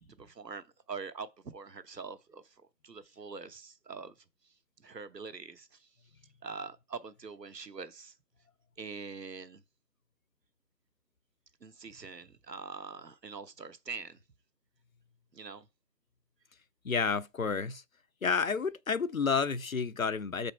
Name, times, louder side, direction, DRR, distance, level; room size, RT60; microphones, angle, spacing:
voice 1, 0.0-4.1 4.8-5.9 6.4-8.1 8.8-9.6 11.6-14.2 15.3-15.7, right 5 dB, 85° right, 1.1 m, -44 dB
voice 2, 16.8-17.8 18.2-20.5, left 5 dB, 60° left, 0.5 m, -30 dB
6.3 x 5.1 x 4.4 m
figure-of-eight pair, 170°, 48 cm